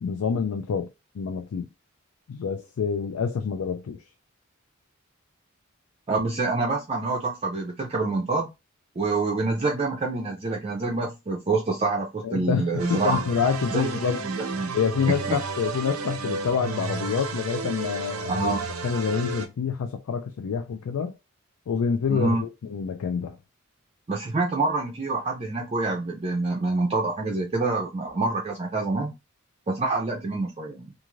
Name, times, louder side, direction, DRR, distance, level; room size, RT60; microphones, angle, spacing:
voice 1, 0.0-0.9 1.1-1.7 2.3-4.0 12.2-14.2 14.7-18.6 18.8-21.1 21.7-23.4, left 6 dB, 85° left, 0.4 m, -27 dB
voice 2, 6.1-8.5 9.0-13.2 13.7-14.7 15.3-15.4 18.3-18.6 22.1-22.4 24.1-29.1 29.7-30.9, right 3 dB, 30° right, 0.5 m, -26 dB
sound 1, 12.8-19.5, right 4 dB, 90° right, 0.6 m, -33 dB
2.5 x 2.4 x 3.0 m
head